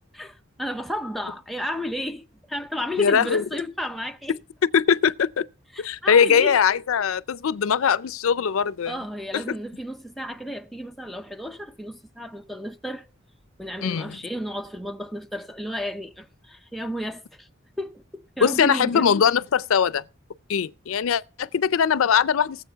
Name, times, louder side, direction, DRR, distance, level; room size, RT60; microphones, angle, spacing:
voice 1, 0.1-4.4 5.7-6.6 8.9-13.1 13.6-17.5 17.8-19.0, equal, ahead, 0.6 m, -33 dB
voice 2, 3.0-3.4 4.7-5.4 5.8-9.0 9.3-9.4 13.8-14.2 18.4-20.0 20.5-22.6, left 7 dB, 80° left, 0.4 m, -21 dB
18.5 x 7.7 x 3.4 m
head